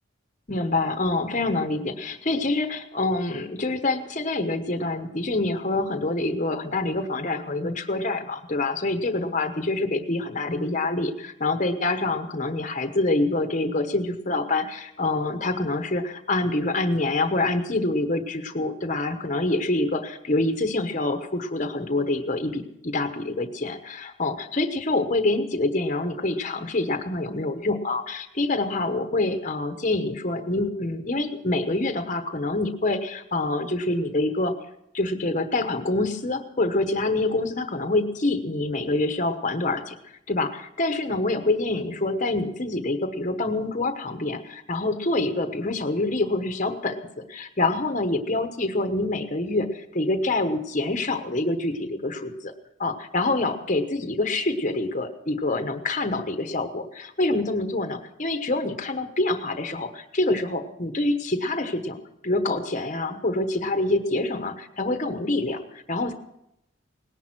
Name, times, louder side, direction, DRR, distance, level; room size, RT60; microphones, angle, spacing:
voice 1, 0.5-34.5 34.9-52.5 52.8-62.0 62.2-66.1, left 2 dB, 40° left, 7 dB, 1.1 m, -26 dB
18.5 x 11.0 x 6.1 m, 0.82 s
head